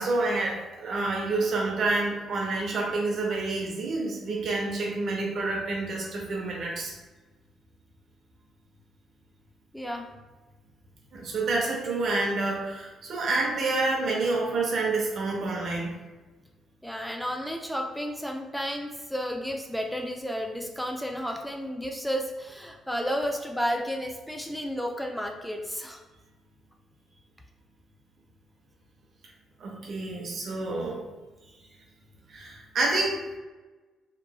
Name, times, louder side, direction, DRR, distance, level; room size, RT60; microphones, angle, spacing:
voice 1, 0.0-6.9 11.1-15.9 29.6-31.0 32.3-33.2, right 3 dB, 60° right, -1 dB, 0.7 m, -28 dB
voice 2, 9.7-10.1 16.8-26.0, equal, 5° left, 2 dB, 0.4 m, -32 dB
2.9 x 2.4 x 2.2 m, 1.2 s
supercardioid pair, 55°, 0 cm